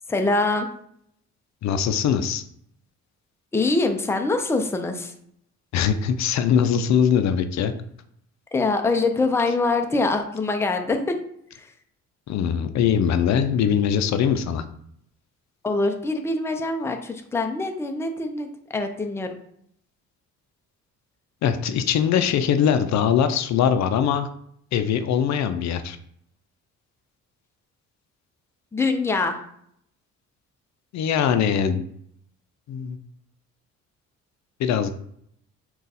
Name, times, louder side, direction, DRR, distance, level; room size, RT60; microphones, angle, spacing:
voice 1, 0.1-0.7 3.5-5.1 8.5-11.2 11.5-11.6 15.6-19.4 28.7-29.4, left 3 dB, 10° left, 5 dB, 0.5 m, -24 dB
voice 2, 1.6-2.4 5.7-7.7 12.3-14.6 21.4-24.3 24.7-26.0 30.9-31.8 32.7-33.0 34.6-34.9, left 8 dB, 65° left, 10 dB, 0.5 m, -21 dB
3.9 x 2.3 x 4.0 m, 0.70 s
cardioid pair, 90°, 30 cm